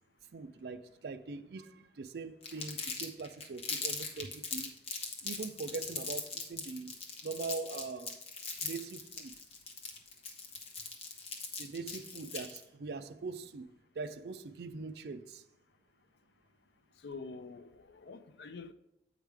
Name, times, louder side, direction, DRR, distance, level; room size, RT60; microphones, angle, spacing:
voice 1, 0.3-4.8 5.2-6.9 7.2-8.2 8.6-9.3 11.6-13.7 14.0-15.4, right 4 dB, 65° right, 0.4 m, -42 dB
Crumpling crinkling, 2.4-12.6, left 4 dB, 35° left, 0.9 m, -40 dB
voice 2, 16.9-18.7, left 4 dB, 75° left, 0.5 m, -46 dB
8.1 x 5.0 x 3.4 m
head